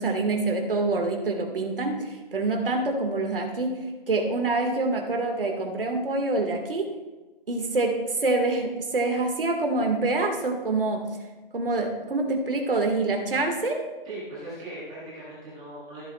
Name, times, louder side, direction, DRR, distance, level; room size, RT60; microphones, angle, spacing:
voice 1, 0.0-3.8 4.1-6.9 7.5-11.0 11.5-13.8, right 3 dB, 70° right, 3 dB, 1.9 m, -26 dB
voice 2, 14.0-16.0, right 1 dB, 5° right, -8 dB, 0.9 m, -39 dB
14.5 x 7.4 x 2.4 m, 1.2 s
hypercardioid pair, 175°, 29 cm